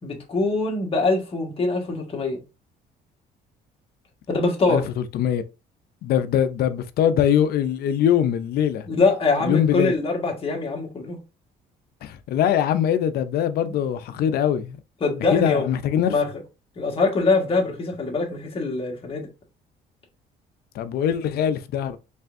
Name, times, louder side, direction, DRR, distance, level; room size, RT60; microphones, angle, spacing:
voice 1, 0.0-2.4 4.3-4.8 8.9-11.2 14.2-14.3 15.0-15.6 16.1-16.3 16.8-19.3, left 3 dB, 35° left, 1.5 m, -23 dB
voice 2, 4.7-5.4 6.0-8.9 9.4-9.9 12.0-14.8 15.3-16.1 20.7-22.0, left 9 dB, 65° left, 0.5 m, -22 dB
4.3 x 3.4 x 2.6 m
cardioid pair, 110°, 17 cm